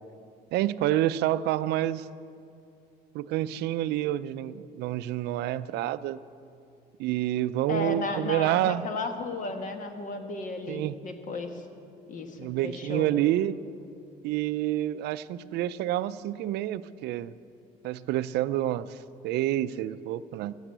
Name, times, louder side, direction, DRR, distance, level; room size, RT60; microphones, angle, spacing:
voice 1, 0.5-2.1 3.1-6.2 7.0-8.9 10.7-11.0 12.4-13.6 14.2-17.3 17.8-19.0 19.2-20.5, right 13 dB, 80° right, 15 dB, 0.4 m, -28 dB
voice 2, 7.7-11.6 12.1-13.1, left 3 dB, 50° left, 6 dB, 1.4 m, -34 dB
12.0 x 8.9 x 8.0 m, 2.6 s
cardioid pair, 110°, 17 cm